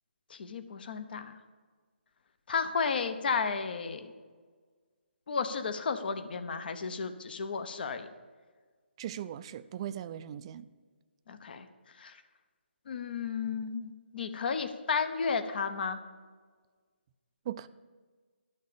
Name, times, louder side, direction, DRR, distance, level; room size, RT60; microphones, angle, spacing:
voice 1, 0.3-1.3 2.5-4.1 5.3-8.1 11.3-11.7 12.0-12.1 12.9-16.0, left 5 dB, 50° left, 1.0 m, -33 dB
voice 2, 9.0-10.7 17.5-17.7, right 10 dB, 30° right, 0.4 m, -39 dB
12.0 x 6.5 x 6.9 m
figure-of-eight pair, 155°, 6 cm